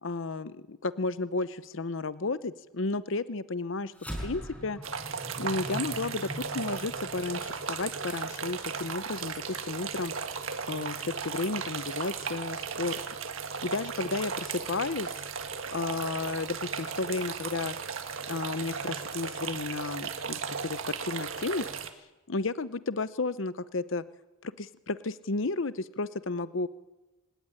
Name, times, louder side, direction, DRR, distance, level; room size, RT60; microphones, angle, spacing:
voice 1, 0.0-3.9 4.2-4.8 5.4-10.1 10.7-13.0 13.6-15.2 15.7-17.7 18.3-21.7 22.3-24.0 24.4-26.7, left 3 dB, 65° left, 15 dB, 0.8 m, -33 dB
sound 1, 3.9-8.6, equal, 5° left, 5.7 m, -41 dB
sound 2, 4.8-21.9, right 6 dB, 70° right, 1.7 m, -36 dB
25.0 x 17.5 x 10.0 m, 1.1 s
head